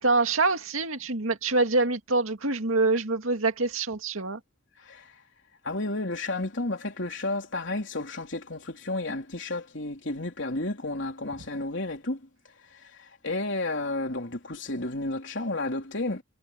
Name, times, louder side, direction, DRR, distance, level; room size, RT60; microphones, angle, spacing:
voice 1, 0.0-4.4, right 3 dB, 80° right, 2.3 m, -25 dB
voice 2, 4.8-5.1 5.6-12.2 12.7-16.2, left 2 dB, 60° left, 3.9 m, -32 dB
head